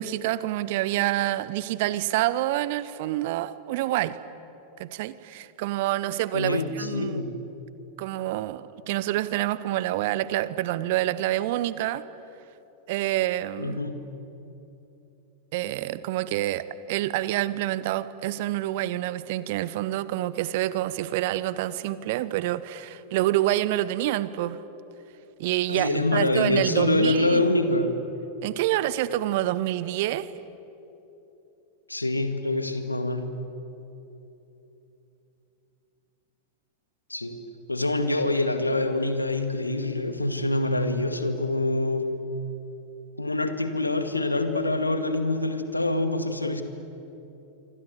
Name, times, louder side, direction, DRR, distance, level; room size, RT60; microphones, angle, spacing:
voice 1, 0.0-4.2 4.8-7.2 8.0-12.0 12.9-13.8 15.5-24.6 25.4-27.4 28.4-30.3, right 15 dB, 50° right, 16 dB, 1.0 m, -27 dB
voice 2, 6.3-7.3 13.6-14.0 25.7-27.9 31.9-33.3 37.1-37.4 37.7-42.2 43.2-46.6, left 2 dB, 85° left, 8 dB, 2.0 m, -25 dB
27.0 x 24.5 x 8.4 m, 3.0 s
figure-of-eight pair, 90°, 0 cm